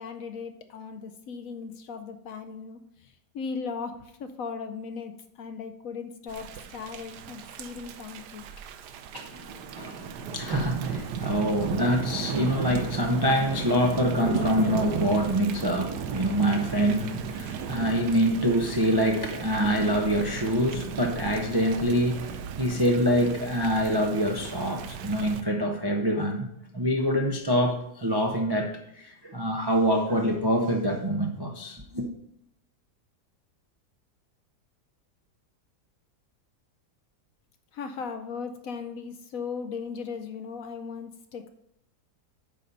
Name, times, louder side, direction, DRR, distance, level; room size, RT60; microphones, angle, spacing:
voice 1, 0.0-8.4 37.7-41.5, left 5 dB, 65° left, 0.9 m, -37 dB
Thunder / Rain, 6.3-25.4, right 7 dB, 80° right, 1.2 m, -35 dB
voice 2, 9.1-26.5 26.7-32.1, equal, 35° right, 0.3 m, -25 dB
9.1 x 4.1 x 5.3 m
omnidirectional pair, 1.8 m